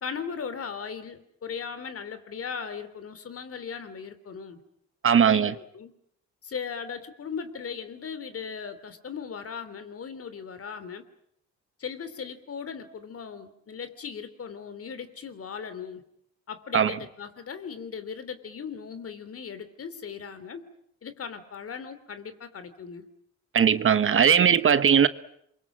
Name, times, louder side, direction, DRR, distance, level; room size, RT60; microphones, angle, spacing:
voice 1, 0.0-4.6 5.1-5.9 6.4-11.0 11.8-16.0 16.5-20.6 21.0-23.0, left 6 dB, 50° left, 3.2 m, -38 dB
voice 2, 5.0-5.5 16.7-16.9 23.5-25.1, right 7 dB, 45° right, 1.1 m, -19 dB
27.5 x 23.5 x 7.4 m
cardioid pair, 90°, 30 cm